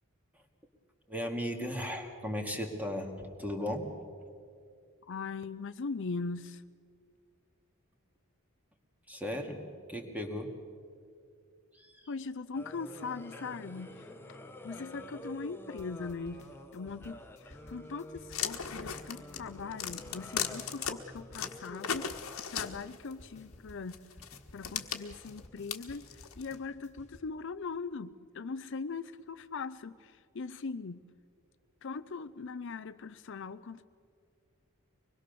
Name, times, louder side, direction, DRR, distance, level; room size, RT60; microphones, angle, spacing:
voice 1, 1.1-3.1 3.4-3.9 9.1-9.6 9.9-10.5 11.7-12.1, equal, 5° right, 3 dB, 2.2 m, -36 dB
voice 2, 5.1-6.6 12.1-14.4 14.6-16.5 16.7-22.1 22.5-24.0 24.5-31.0 31.8-33.9, left 4 dB, 60° left, 12 dB, 0.5 m, -40 dB
sound 1, 12.5-22.1, left 1 dB, 10° left, 1.3 m, -49 dB
sound 2, 15.8-27.2, left 1 dB, 35° left, 1.5 m, -55 dB
sound 3, 18.3-20.9 21.3-23.1 23.9-26.6, left 8 dB, 80° left, 1.4 m, -37 dB
24.5 x 20.5 x 6.8 m, 2.3 s
head